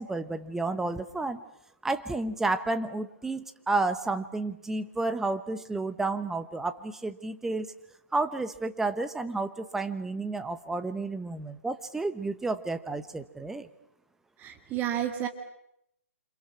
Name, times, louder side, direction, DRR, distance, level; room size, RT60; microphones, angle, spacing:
voice 1, 0.0-1.4 1.8-7.7 8.1-13.7, right 3 dB, 5° right, 10 dB, 1.0 m, -31 dB
voice 2, 14.4-15.3, right 11 dB, 20° right, 6 dB, 2.0 m, -30 dB
28.5 x 26.5 x 6.1 m, 0.79 s
hypercardioid pair, 140°, 8 cm